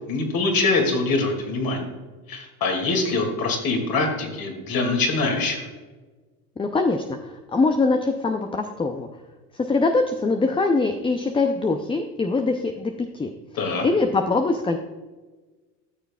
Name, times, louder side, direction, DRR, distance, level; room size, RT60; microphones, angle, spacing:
voice 1, 0.1-1.9 2.3-5.7 13.6-13.9, left 3 dB, 50° left, 3 dB, 2.4 m, -24 dB
voice 2, 6.6-9.1 9.5-13.3 13.8-14.8, left 3 dB, 10° left, 5 dB, 0.5 m, -23 dB
13.5 x 6.7 x 2.3 m, 1.3 s
hypercardioid pair, 75°, 46 cm